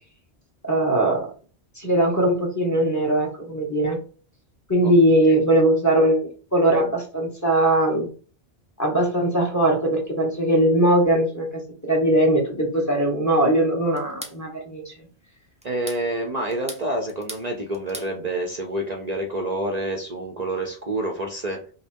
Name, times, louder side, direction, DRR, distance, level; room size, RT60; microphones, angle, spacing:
voice 1, 0.6-1.3 1.8-4.0 4.7-8.1 8.8-14.9, right 1 dB, 15° left, -1 dB, 1.2 m, -20 dB
sound 1, 14.0-14.4 15.6-16.0 16.5-17.5 17.7-18.1, right 1 dB, 10° right, 0.5 m, -38 dB
voice 2, 15.6-21.7, right 1 dB, 45° right, 2 dB, 0.7 m, -28 dB
5.3 x 2.1 x 4.4 m, 0.39 s
omnidirectional pair, 1.1 m